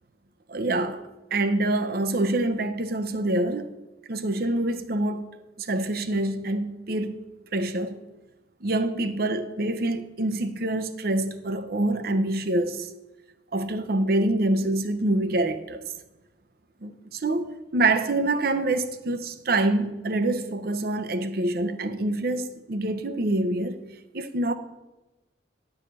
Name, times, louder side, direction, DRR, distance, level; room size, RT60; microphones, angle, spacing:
voice 1, 0.5-3.7 4.1-5.3 5.6-7.2 7.5-8.0 8.6-12.9 13.5-15.8 16.8-23.8 24.1-24.5, right 2 dB, 55° right, 0.7 m, -26 dB
11.0 x 4.9 x 7.4 m
head